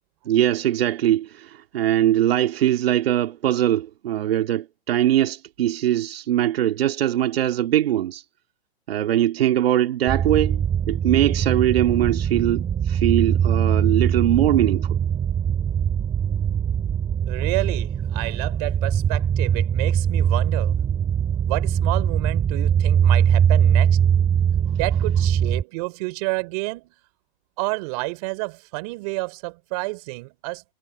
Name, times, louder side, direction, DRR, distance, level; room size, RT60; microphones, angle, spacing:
voice 1, 0.3-8.2 8.9-15.0, right 12 dB, 60° right, 2.1 m, -21 dB
sound 1, 10.1-25.6, right 8 dB, 15° right, 2.7 m, -21 dB
voice 2, 17.3-20.8 21.4-24.0 24.7-26.9 27.6-30.6, right 27 dB, 35° right, 4.2 m, -30 dB
hypercardioid pair, 160°, 34 cm